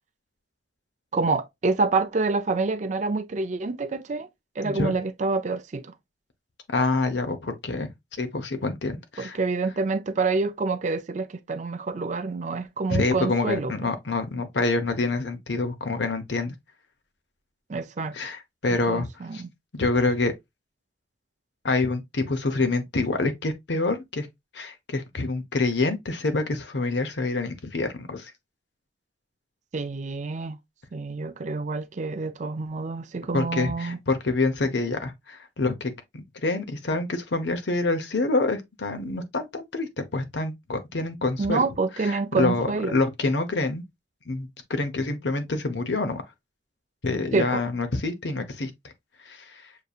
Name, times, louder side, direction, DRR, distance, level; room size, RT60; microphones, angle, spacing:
voice 1, 1.1-4.3 4.6-5.9 9.2-13.7 17.7-18.2 18.9-19.5 29.7-30.6 30.9-34.0 41.4-43.0 47.3-47.6, right 3 dB, 40° right, 0.4 m, -27 dB
voice 2, 4.6-5.0 6.7-7.9 8.2-9.4 12.9-16.5 18.1-19.4 19.7-20.3 21.6-24.3 24.5-28.3 33.3-41.6 42.0-43.8 44.3-46.2 47.0-48.7 49.2-49.6, left 3 dB, 70° left, 0.9 m, -27 dB
6.6 x 2.7 x 2.4 m
head